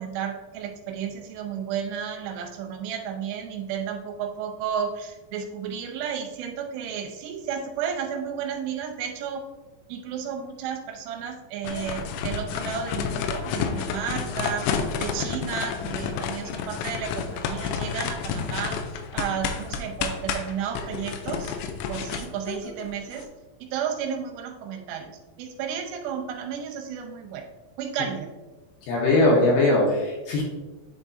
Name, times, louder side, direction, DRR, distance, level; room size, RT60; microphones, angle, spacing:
voice 1, 0.0-9.5 9.9-14.7 15.0-18.8 19.1-21.5 21.9-23.3 23.6-27.5 27.8-28.3, right 8 dB, 85° right, 3 dB, 2.8 m, -32 dB
sound 1, 11.6-23.2, left 6 dB, 85° left, 2.8 m, -30 dB
voice 2, 28.9-30.4, left 2 dB, 70° left, -3 dB, 2.6 m, -20 dB
10.0 x 3.6 x 2.6 m, 1.2 s
omnidirectional pair, 5.1 m